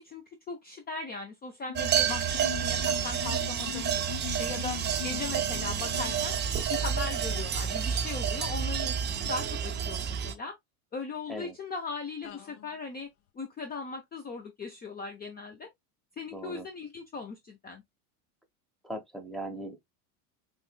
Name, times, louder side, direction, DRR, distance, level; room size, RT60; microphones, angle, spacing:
voice 1, 0.0-3.9 4.3-4.8 5.0-6.3 6.7-10.5 10.9-13.1 13.3-15.7 16.2-17.8, left 4 dB, 20° left, 0.7 m, -39 dB
sound 1, 1.7-6.5 7.5-7.6 7.9-8.1 8.4-8.5 8.8-8.9 12.2-12.8, left 19 dB, 75° left, 1.0 m, -42 dB
sound 2, 1.8-10.3, right 8 dB, 25° right, 0.7 m, -30 dB
voice 2, 16.3-16.7 18.8-19.8, right 1 dB, ahead, 1.1 m, -39 dB
5.3 x 3.3 x 2.3 m
supercardioid pair, 115°, 44 cm